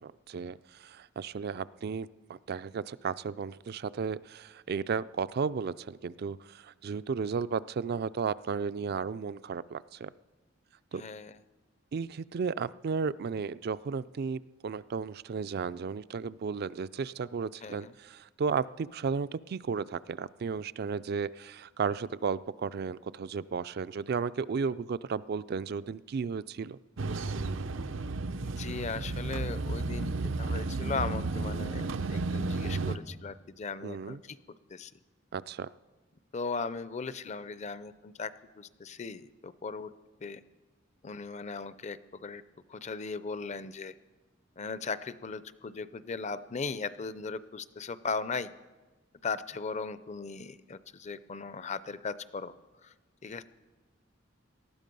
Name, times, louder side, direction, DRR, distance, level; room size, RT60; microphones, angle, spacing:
voice 1, 0.0-10.1 10.9-11.0 11.9-26.8 33.8-34.2 35.3-35.7, right 5 dB, 55° right, 16 dB, 0.4 m, -34 dB
voice 2, 10.9-11.4 17.6-17.9 28.4-34.4 34.7-34.9 36.3-39.9 40.2-40.4 41.0-42.4 42.7-43.9 44.6-48.5 49.2-52.5 52.8-52.9 53.2-53.4, left 4 dB, 35° left, 15 dB, 0.5 m, -38 dB
sound 1, 27.0-33.0, right 3 dB, 85° right, 0.7 m, -33 dB
19.0 x 13.0 x 5.4 m, 1.2 s
head